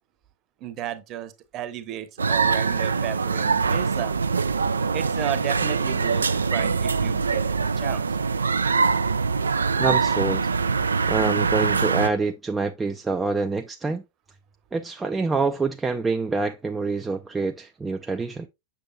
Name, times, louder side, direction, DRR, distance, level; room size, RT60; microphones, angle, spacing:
voice 1, 0.6-4.2 4.9-8.1, right 10 dB, 35° right, 1.0 m, -33 dB
sound 1, 2.2-12.1, right 5 dB, 75° right, 0.4 m, -23 dB
voice 2, 9.8-10.5 11.1-14.0 14.7-18.5, right 4 dB, 15° right, 0.4 m, -26 dB
7.0 x 6.7 x 2.2 m
figure-of-eight pair, 90°, 0 cm